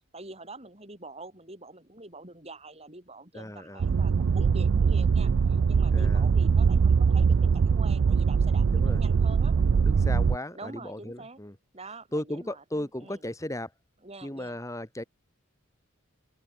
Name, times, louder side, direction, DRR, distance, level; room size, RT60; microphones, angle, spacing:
voice 1, 0.1-5.3 5.7-9.5 10.5-11.4 11.7-13.2 14.0-14.6, right 2 dB, 30° right, 6.8 m, -45 dB
voice 2, 3.3-3.9 5.9-6.3 8.7-9.0 9.6-11.6 12.1-13.7 14.2-15.0, left 1 dB, 15° left, 2.0 m, -36 dB
sound 1, 3.8-10.4, right 5 dB, 65° right, 0.4 m, -22 dB
open air
head